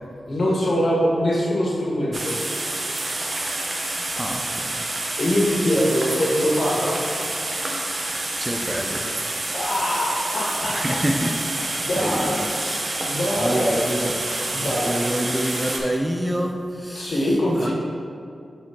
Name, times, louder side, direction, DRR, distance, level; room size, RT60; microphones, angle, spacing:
voice 1, 0.3-2.3 5.2-7.0 9.5-11.0 11.8-12.4 13.0-13.7 14.5-14.9 16.9-17.7, equal, 65° left, -5 dB, 1.5 m, -23 dB
sound 1, 2.1-15.8, right 2 dB, 50° right, 0.8 m, -28 dB
voice 2, 4.1-4.8 8.4-9.3 10.7-11.3 11.9-14.2 14.6-17.3 17.6-17.7, equal, 10° right, 2 dB, 0.5 m, -27 dB
8.6 x 4.4 x 2.8 m, 2.4 s
cardioid pair, 70°, 0 cm